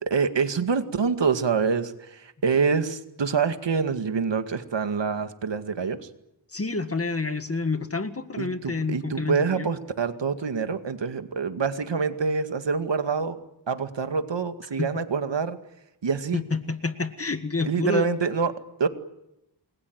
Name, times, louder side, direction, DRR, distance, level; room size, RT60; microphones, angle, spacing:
voice 1, 0.0-6.1 8.4-13.4 13.7-15.6 16.0-16.4 17.6-18.9, right 5 dB, 70° right, 9 dB, 2.1 m, -26 dB
voice 2, 6.5-9.7 14.8-14.9 16.3-18.1, left 3 dB, 30° left, 10 dB, 1.9 m, -28 dB
28.5 x 21.5 x 9.6 m, 0.87 s
wide cardioid pair, 105°, 45 cm